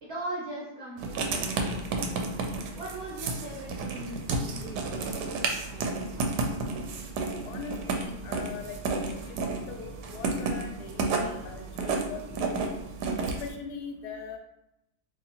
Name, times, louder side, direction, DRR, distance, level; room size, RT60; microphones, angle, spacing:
voice 1, 0.0-2.0 2.8-5.9 6.2-6.4, right 1 dB, 50° right, -6 dB, 0.9 m, -40 dB
Writing, 1.0-13.5, right 3 dB, 90° right, 1.2 m, -32 dB
voice 2, 7.4-8.8 9.1-9.4 9.7-12.7 13.2-14.4, left 6 dB, 75° left, 4 dB, 1.1 m, -41 dB
2.8 x 2.7 x 4.0 m, 0.83 s
omnidirectional pair, 1.8 m